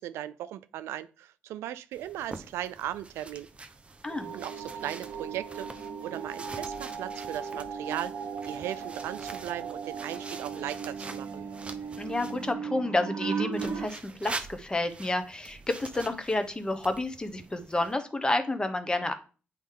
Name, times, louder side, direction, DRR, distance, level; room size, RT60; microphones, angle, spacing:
voice 1, 0.0-3.5 4.3-11.4, right 12 dB, 85° right, 0.3 m, -38 dB
sound 1, 1.9-12.5 13.5-17.9, right 3 dB, 25° right, 0.7 m, -45 dB
sound 2, 4.1-13.9, right 6 dB, 65° right, 1.0 m, -37 dB
voice 2, 12.0-19.1, left 2 dB, 20° left, 0.9 m, -30 dB
8.3 x 3.0 x 3.7 m
cardioid pair, 75°, 4 cm